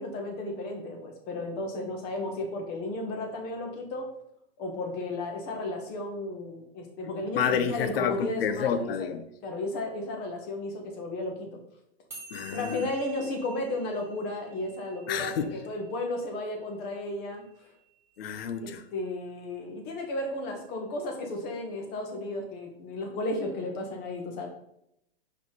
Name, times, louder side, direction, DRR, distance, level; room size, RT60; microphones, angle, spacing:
voice 1, 0.0-4.1 4.6-9.1 9.4-11.5 12.5-17.4 18.6-24.5, left 2 dB, 30° left, 3 dB, 1.4 m, -34 dB
voice 2, 7.3-9.2 12.3-12.9 15.1-15.5 18.2-18.8, left 7 dB, 65° left, 10 dB, 0.8 m, -29 dB
sound 1, 12.1-18.7, right 5 dB, 10° right, 1.9 m, -50 dB
5.6 x 4.6 x 4.0 m, 0.76 s
hypercardioid pair, 140°, 31 cm